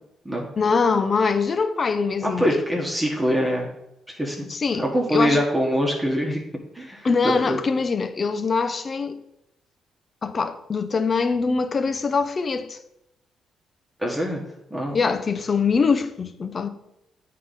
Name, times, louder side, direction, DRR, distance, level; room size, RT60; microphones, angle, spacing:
voice 1, 0.6-2.6 4.5-5.4 7.0-9.2 10.2-12.8 14.9-16.7, left 4 dB, 40° left, 0.7 m, -23 dB
voice 2, 2.2-3.7 4.1-4.5 4.8-6.4 6.7-7.6 14.0-14.4 14.7-15.0, equal, 10° right, 1.5 m, -24 dB
8.4 x 3.8 x 5.5 m
cardioid pair, 90°, 0 cm